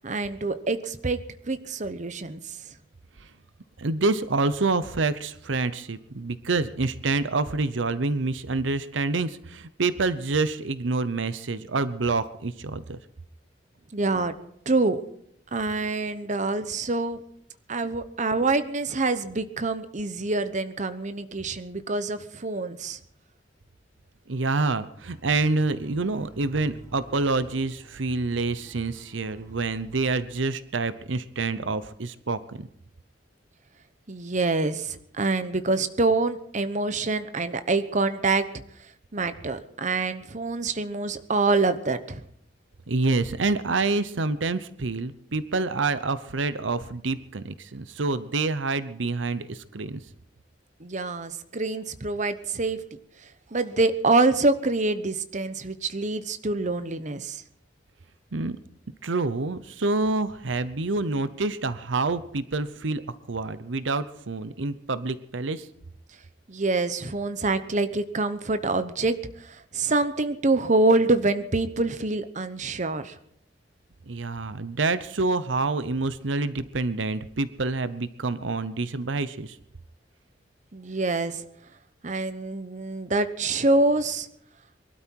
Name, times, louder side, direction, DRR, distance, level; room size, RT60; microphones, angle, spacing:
voice 1, 0.0-1.2 1.5-2.4 13.9-14.3 14.7-15.0 15.5-17.2 17.7-23.0 34.1-38.5 39.1-42.2 50.8-52.8 53.5-57.4 66.5-73.2 80.7-81.4 82.0-84.3, right 3 dB, 40° right, 11 dB, 1.0 m, -26 dB
voice 2, 3.8-13.0 24.3-32.7 42.9-50.0 58.3-58.6 59.0-63.0 63.3-65.7 74.1-79.6, right 3 dB, 90° right, 14 dB, 0.8 m, -27 dB
sound 1, 25.1-30.5, equal, 15° right, 5.1 m, -49 dB
23.0 x 12.5 x 4.6 m, 0.69 s
head